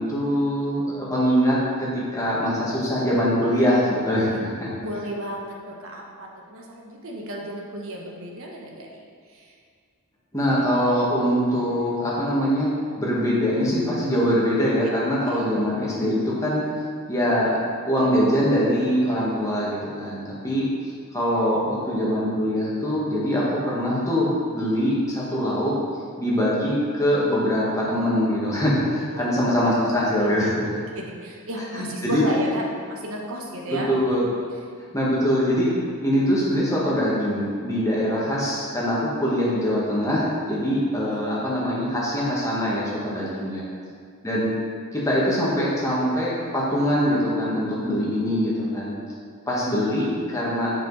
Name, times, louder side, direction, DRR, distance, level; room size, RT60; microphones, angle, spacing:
voice 1, 0.0-4.7 10.3-16.6 17.1-17.6 17.9-20.6 21.1-25.7 26.2-30.7 31.8-32.2 33.9-34.3 34.9-35.7 36.0-43.6 44.2-44.5 44.9-48.9 49.5-50.7, equal, 15° left, -7 dB, 1.5 m, -23 dB
voice 2, 4.7-9.0 9.3-9.5 10.5-10.7 14.8-15.0 15.2-15.4 28.8-29.3 29.6-29.9 30.2-33.9 34.2-34.6 40.9-41.2 43.0-43.5, right 1 dB, 65° right, -1 dB, 1.1 m, -34 dB
7.4 x 5.0 x 4.0 m, 2.1 s
head